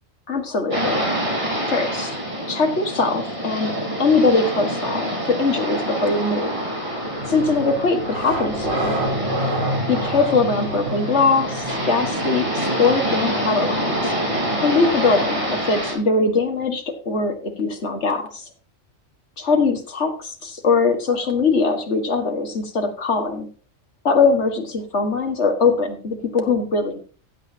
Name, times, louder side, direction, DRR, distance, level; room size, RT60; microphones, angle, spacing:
voice 1, 0.3-1.0 1.7-2.2 2.5-3.7 4.0-6.5 7.3-9.0 9.9-14.0 14.6-18.5 19.4-20.1 20.4-23.5 24.0-27.0, left 4 dB, 60° left, 5 dB, 2.0 m, -21 dB
sound 1, 0.7-15.9, equal, 25° right, 3.9 m, -26 dB
sound 2, 7.2-15.9, right 1 dB, 65° right, 4.9 m, -30 dB
15.5 x 8.2 x 2.8 m, 0.38 s
omnidirectional pair, 1.4 m